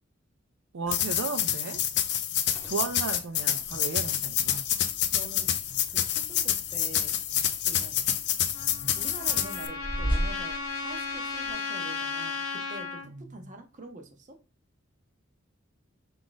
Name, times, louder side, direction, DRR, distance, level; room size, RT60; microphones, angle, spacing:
voice 1, 0.7-1.8 2.6-4.7 5.2-5.3 13.1-13.2, right 4 dB, 75° right, 7 dB, 0.5 m, -35 dB
sound 1, 0.9-9.7, left 10 dB, 55° left, 0.4 m, -28 dB
sound 2, 2.3-11.5, equal, 10° left, 1.1 m, -39 dB
voice 2, 5.1-5.5 5.9-7.1 7.6-8.1 9.0-14.4, right 2 dB, 35° right, 4 dB, 0.7 m, -45 dB
Trumpet, 8.5-13.1, left 4 dB, 90° left, 0.8 m, -35 dB
4.9 x 2.4 x 3.8 m, 0.32 s
head